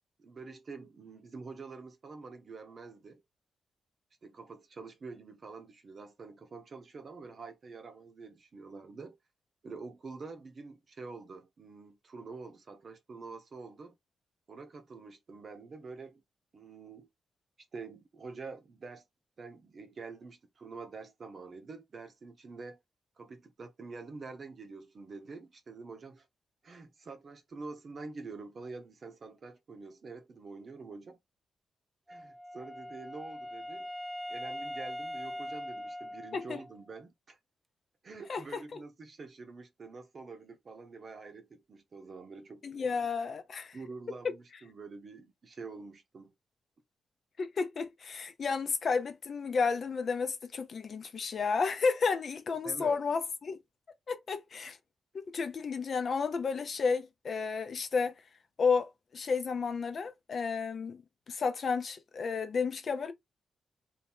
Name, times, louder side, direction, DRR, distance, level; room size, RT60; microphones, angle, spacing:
voice 1, 0.2-3.2 4.2-9.2 9.6-14.0 14.5-16.2 16.5-17.1 17.7-19.0 19.4-22.8 23.2-26.2 26.6-31.2 32.1-33.9 34.3-37.4 38.0-42.9 43.7-46.3 52.6-53.0, right 4 dB, 45° right, 0.8 m, -46 dB
Wind instrument woodwind instrument, 32.1-36.9, left 1 dB, 5° right, 0.4 m, -41 dB
voice 2, 38.3-38.8 42.6-43.8 47.4-53.6 54.1-54.8 55.2-58.1 58.6-61.0 61.3-63.1, left 5 dB, 50° left, 0.6 m, -32 dB
2.8 x 2.6 x 3.5 m
cardioid pair, 105°, 0 cm